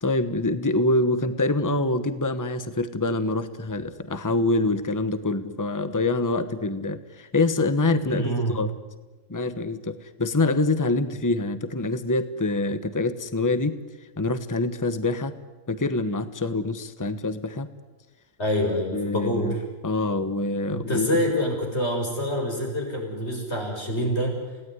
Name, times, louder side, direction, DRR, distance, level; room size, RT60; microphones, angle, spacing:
voice 1, 0.0-8.7 9.3-13.8 14.2-15.3 15.7-17.7 18.9-19.5 19.8-21.2, left 2 dB, 15° left, 11 dB, 1.2 m, -25 dB
voice 2, 8.0-8.6 18.4-19.5 20.7-24.4, equal, 55° left, 1 dB, 7.0 m, -26 dB
29.5 x 18.0 x 9.7 m, 1.2 s
omnidirectional pair, 1.4 m